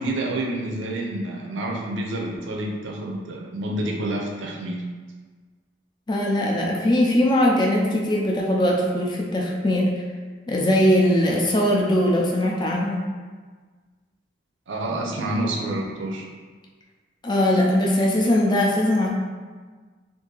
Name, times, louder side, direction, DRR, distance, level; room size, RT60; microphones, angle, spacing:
voice 1, 0.0-4.8 14.7-16.3, right 1 dB, 80° right, -1 dB, 0.5 m, -28 dB
voice 2, 6.1-9.9 10.5-13.0 17.2-19.1, left 1 dB, 25° left, -2 dB, 0.4 m, -20 dB
2.6 x 2.5 x 3.8 m, 1.5 s
head